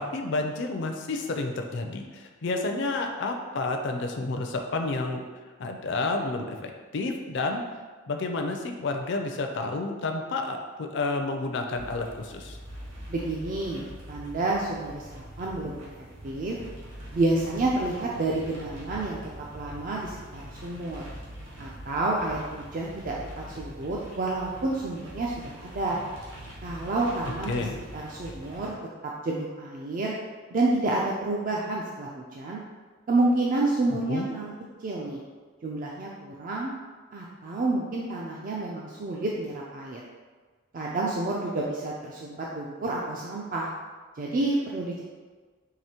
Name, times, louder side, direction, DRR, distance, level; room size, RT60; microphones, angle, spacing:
voice 1, 0.0-5.2 5.6-7.6 8.1-12.6 27.5-27.8 34.1-34.3, left 3 dB, 60° left, 4 dB, 0.4 m, -30 dB
sound 1, 11.7-28.7, equal, 65° right, 1.2 m, -43 dB
voice 2, 13.1-15.8 16.2-16.6 17.1-19.2 19.5-21.0 21.6-26.0 26.6-27.5 27.9-28.7 29.0-30.1 30.5-32.6 33.1-34.5 34.8-35.2 35.6-36.7 37.1-40.0 40.7-43.7 44.2-45.0, right 2 dB, 40° right, -3 dB, 0.3 m, -29 dB
4.8 x 2.9 x 2.9 m, 1.4 s
head